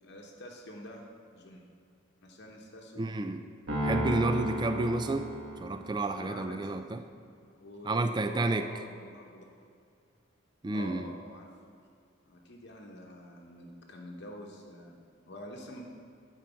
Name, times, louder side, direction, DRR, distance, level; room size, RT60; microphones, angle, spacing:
voice 1, 0.0-1.0 1.3-1.6 2.2-3.2 6.1-6.7 7.6-9.4 10.7-11.5 12.3-15.8, left 1 dB, 55° left, 0 dB, 0.9 m, -47 dB
voice 2, 3.0-3.4 3.8-5.3 5.6-7.0 7.8-8.7 10.6-11.1, right 2 dB, 20° right, 8 dB, 0.4 m, -30 dB
Piano, 3.7-6.1, equal, 80° right, 2.2 m, -33 dB
9.9 x 4.5 x 7.0 m, 2.4 s
head